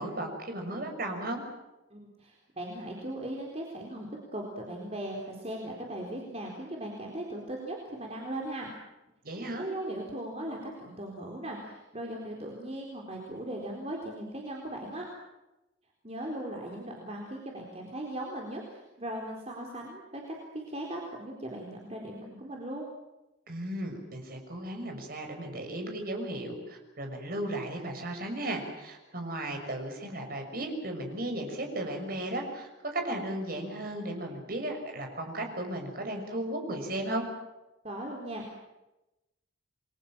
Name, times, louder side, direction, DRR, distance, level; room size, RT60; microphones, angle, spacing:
voice 1, 0.0-1.4 9.2-9.7 23.5-37.2, right 1 dB, 50° right, 4 dB, 6.3 m, -35 dB
voice 2, 1.9-4.1 4.3-8.7 9.6-15.0 16.0-22.8 37.8-38.6, right 1 dB, 35° right, 0 dB, 4.1 m, -38 dB
29.0 x 22.5 x 7.4 m, 0.97 s
head